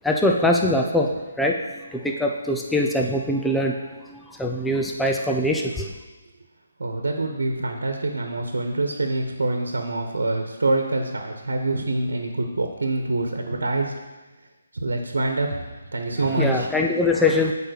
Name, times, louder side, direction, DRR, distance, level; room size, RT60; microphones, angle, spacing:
voice 1, 0.0-1.1 1.4-1.6 1.9-5.9 16.3-17.5, left 1 dB, 5° left, 1 dB, 0.6 m, -22 dB
voice 2, 6.8-13.9 14.7-16.7, right 2 dB, 80° right, 4 dB, 1.2 m, -25 dB
7.8 x 5.0 x 6.5 m, 1.2 s
hypercardioid pair, 155°, 0 cm